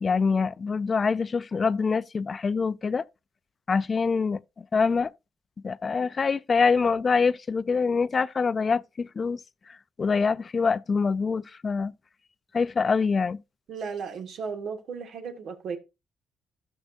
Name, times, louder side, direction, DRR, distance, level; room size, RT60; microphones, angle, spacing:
voice 1, 0.0-3.0 3.7-4.4 4.7-5.1 5.6-9.4 10.0-11.9 12.5-13.4, left 5 dB, 40° left, 0.4 m, -25 dB
voice 2, 13.7-15.8, right 5 dB, 70° right, 1.8 m, -35 dB
13.0 x 6.2 x 2.5 m
cardioid pair, 80°, 0 cm